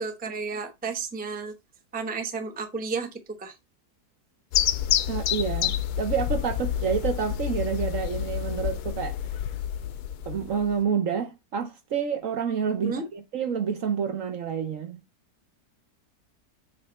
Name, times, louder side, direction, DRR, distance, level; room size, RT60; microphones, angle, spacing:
voice 1, 0.0-1.5 1.9-3.1 3.4-3.5 12.8-13.0, right 4 dB, 10° right, 0.6 m, -32 dB
sound 1, 4.5-10.8, left 11 dB, 75° left, 1.1 m, -28 dB
voice 2, 5.1-9.2 10.3-15.0, right 7 dB, 55° right, 1.1 m, -28 dB
7.3 x 3.3 x 4.1 m
omnidirectional pair, 1.8 m